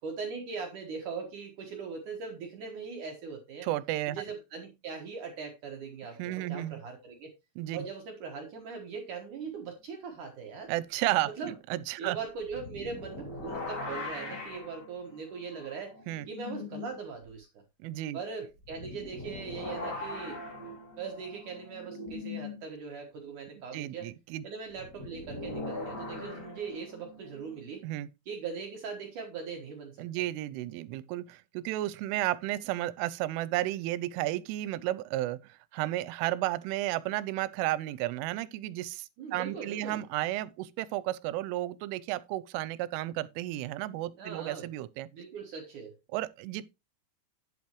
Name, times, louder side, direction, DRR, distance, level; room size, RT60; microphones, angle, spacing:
voice 1, 0.0-3.7 4.1-7.3 7.7-10.7 11.2-11.5 12.0-16.0 16.3-17.6 18.1-20.4 21.0-24.1 24.4-27.8 28.3-30.1 39.2-40.1 44.2-44.7 45.1-46.0, right 5 dB, 70° right, 1.9 m, -40 dB
voice 2, 3.6-4.2 6.2-6.8 7.6-7.8 10.7-12.2 16.1-16.3 17.8-18.2 23.7-24.4 27.8-28.1 30.0-45.1 46.1-46.6, right 16 dB, 85° right, 3.1 m, -33 dB
sound 1, 12.4-16.9 17.2-17.3 18.6-22.6 24.7-27.6, left 2 dB, 30° left, 2.0 m, -41 dB
10.5 x 8.6 x 3.0 m
omnidirectional pair, 5.6 m